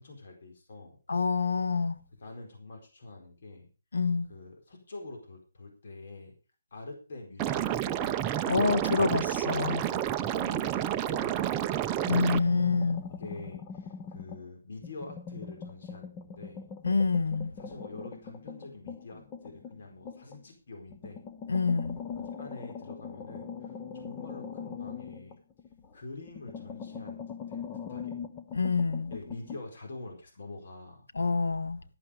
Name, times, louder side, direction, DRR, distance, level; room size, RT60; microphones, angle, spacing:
voice 1, 0.0-1.0 2.2-3.7 4.3-6.3 6.7-8.2 9.9-11.8 13.1-16.7 17.6-21.2 22.2-25.4 25.9-27.6 27.9-28.2 29.1-31.1, left 2 dB, 55° left, 4.5 m, -46 dB
voice 2, 1.1-2.0 3.9-4.3 8.5-9.8 12.0-13.0 16.8-17.5 21.5-22.0 28.5-29.1 31.1-31.8, left 4 dB, 75° left, 1.4 m, -27 dB
Liquid, 7.4-12.4, right 11 dB, 15° right, 0.7 m, -30 dB
sound 1, 12.0-14.5 14.8-20.4 20.9-25.9 26.3-29.6, left 6 dB, 20° left, 1.0 m, -42 dB
12.5 x 11.5 x 5.0 m
hypercardioid pair, 155°, 0 cm